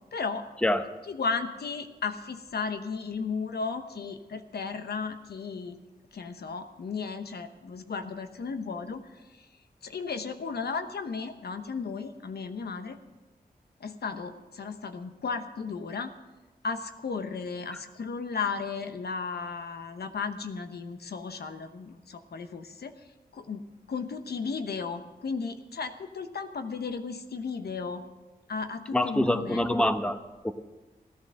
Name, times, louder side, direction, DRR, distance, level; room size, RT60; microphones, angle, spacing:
voice 1, 0.1-0.5 1.0-5.8 6.1-9.5 9.8-13.0 13.8-16.1 16.6-22.9 23.3-23.6 23.9-28.0 28.5-29.7, left 5 dB, 85° left, 8 dB, 1.0 m, -35 dB
voice 2, 28.9-30.5, left 1 dB, 5° left, 9 dB, 0.9 m, -26 dB
16.5 x 10.5 x 6.4 m, 1.1 s
wide cardioid pair, 85°, 16 cm